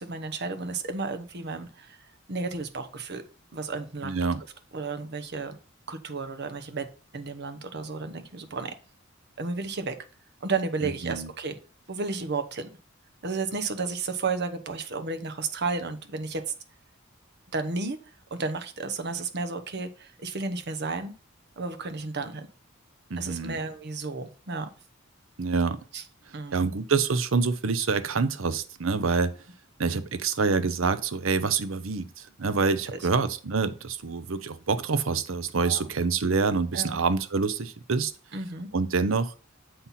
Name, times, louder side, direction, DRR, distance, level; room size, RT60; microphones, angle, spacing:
voice 1, 0.0-2.0 2.3-3.2 3.5-4.2 4.7-5.6 5.9-6.9 7.1-8.7 9.4-10.0 10.4-11.6 11.9-12.7 13.2-16.4 17.5-18.0 18.3-21.1 21.6-22.5 23.2-24.7 25.9-26.0 26.3-26.7 32.6-33.0 35.6-35.8 36.7-37.0 38.3-38.7, right 3 dB, 60° right, 8 dB, 1.0 m, -32 dB
voice 2, 4.0-4.4 10.8-11.3 23.1-23.6 25.4-25.8 26.5-29.3 29.8-38.1 38.7-39.3, right 4 dB, 75° right, 13 dB, 0.7 m, -26 dB
7.7 x 4.2 x 5.7 m, 0.36 s
head